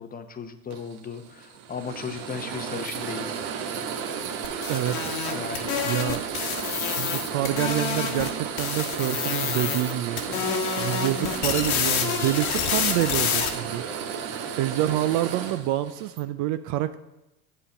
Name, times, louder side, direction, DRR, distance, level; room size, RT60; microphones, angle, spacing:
voice 1, 0.0-3.4 5.3-5.9 7.4-7.5 9.6-9.8 10.3-10.5 13.6-13.8, left 6 dB, 20° left, 9 dB, 0.7 m, -37 dB
sound 1, 0.7-16.2, right 7 dB, 60° right, 1.1 m, -33 dB
sound 2, 4.4-8.3 8.6-9.9 10.2-13.5, left 7 dB, 70° left, 1.3 m, -28 dB
voice 2, 4.7-5.1 5.9-6.3 6.8-10.2 10.8-13.8 14.6-17.0, right 14 dB, 45° right, 12 dB, 0.4 m, -27 dB
8.3 x 5.5 x 5.8 m, 0.96 s
hypercardioid pair, 90°, 44 cm